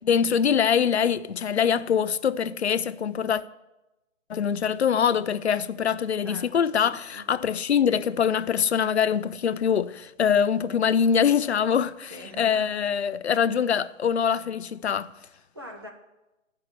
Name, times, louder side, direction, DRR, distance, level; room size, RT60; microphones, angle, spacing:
voice 1, 0.1-3.4 4.3-12.1 12.4-15.1, left 7 dB, 55° left, 0.5 m, -24 dB
voice 2, 6.2-7.3 12.1-12.7 15.2-15.9, equal, 20° right, 0.6 m, -43 dB
9.7 x 5.4 x 7.0 m
figure-of-eight pair, 160°, 39 cm